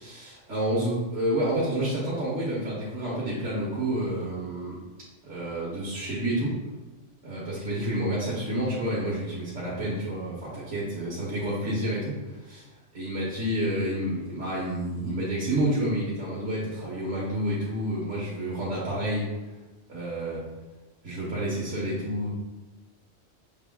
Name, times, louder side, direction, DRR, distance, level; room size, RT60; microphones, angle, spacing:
voice 1, 0.0-4.7 5.2-6.5 7.2-12.6 12.9-19.3 19.9-20.4 21.0-22.3, right 1 dB, 90° right, -8 dB, 1.4 m, -29 dB
6.6 x 3.5 x 2.2 m, 1.1 s
omnidirectional pair, 1.2 m